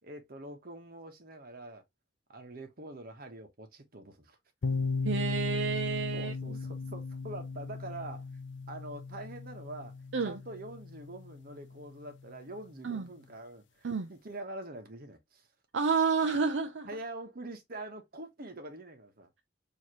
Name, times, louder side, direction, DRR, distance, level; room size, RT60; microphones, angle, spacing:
voice 1, 0.0-1.8 2.3-4.4 6.1-8.3 8.7-9.9 10.2-15.5 16.8-19.4, right 2 dB, 55° right, 1.1 m, -45 dB
sound 1, 4.6-12.3, left 4 dB, 75° left, 0.5 m, -37 dB
voice 2, 5.0-6.6 10.1-10.4 12.8-13.1 13.8-14.1 15.7-16.9, right 5 dB, 75° right, 0.5 m, -30 dB
4.7 x 2.9 x 2.9 m
head